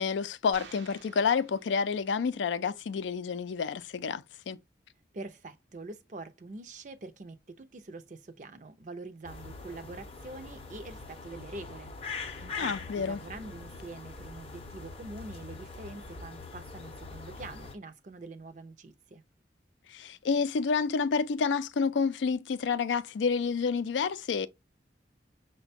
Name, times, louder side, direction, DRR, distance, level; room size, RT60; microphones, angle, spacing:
voice 1, 0.0-4.6 12.6-13.2 19.9-24.5, left 5 dB, 90° left, 0.4 m, -29 dB
sound 1, 0.5-2.3, right 5 dB, 85° right, 0.8 m, -52 dB
voice 2, 5.1-11.9 12.4-19.2, right 2 dB, 45° right, 0.5 m, -45 dB
sound 2, 9.2-17.8, left 4 dB, 30° left, 0.6 m, -43 dB
5.8 x 2.2 x 2.6 m
head